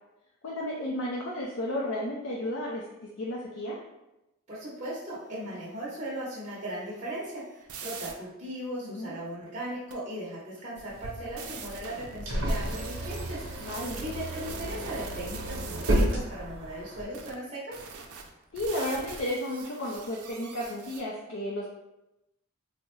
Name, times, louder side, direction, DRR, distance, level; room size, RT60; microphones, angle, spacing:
voice 1, 0.4-2.8 3.2-3.8 8.8-9.2 12.4-12.8 13.6-14.0 18.5-21.7, left 1 dB, 60° left, -3 dB, 0.4 m, -33 dB
voice 2, 4.5-13.7 14.0-17.8, right 1 dB, 30° right, -8 dB, 0.7 m, -38 dB
sound 1, 6.4-8.1 9.9-10.0 11.4-16.1 17.1-17.3 17.7-21.0, right 5 dB, 90° right, 0.4 m, -44 dB
sound 2, 10.8-17.0, right 1 dB, 65° right, 0.8 m, -32 dB
3.5 x 2.0 x 3.0 m, 0.91 s
head